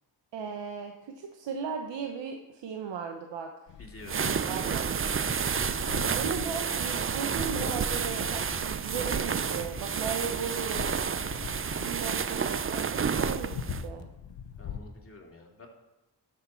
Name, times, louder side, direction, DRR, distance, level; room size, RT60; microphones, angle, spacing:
voice 1, 0.3-3.5 4.1-4.9 6.1-10.9 11.8-14.1, right 7 dB, 90° right, 4 dB, 0.8 m, -37 dB
sound 1, 3.7-14.8, left 7 dB, 85° left, 0.9 m, -42 dB
voice 2, 3.8-4.2 5.1-5.4 14.6-15.7, left 2 dB, 30° left, 0 dB, 2.4 m, -49 dB
sound 2, 4.0-13.8, right 6 dB, 30° right, 0.5 m, -30 dB
12.5 x 6.6 x 4.4 m, 0.97 s
cardioid pair, 70°, 42 cm